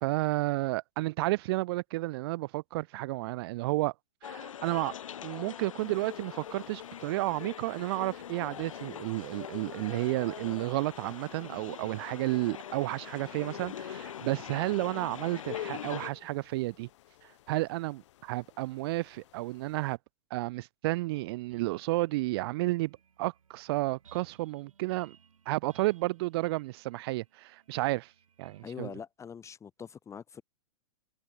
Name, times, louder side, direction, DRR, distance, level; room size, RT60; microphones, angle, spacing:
voice 1, 0.0-3.9 4.2-4.9 5.2-16.9 17.5-20.0 20.3-25.2 25.5-28.1 28.4-28.9, right 20 dB, 50° right, 0.4 m, -32 dB
sound 1, 4.2-16.1, left 9 dB, 75° left, 2.9 m, -43 dB
sound 2, 5.8-20.0, left 14 dB, 60° left, 2.9 m, -52 dB
sound 3, 21.5-28.7, right 7 dB, 85° right, 7.8 m, -62 dB
voice 2, 28.6-30.4, left 7 dB, 15° left, 1.9 m, -43 dB
hypercardioid pair, 120°, 17 cm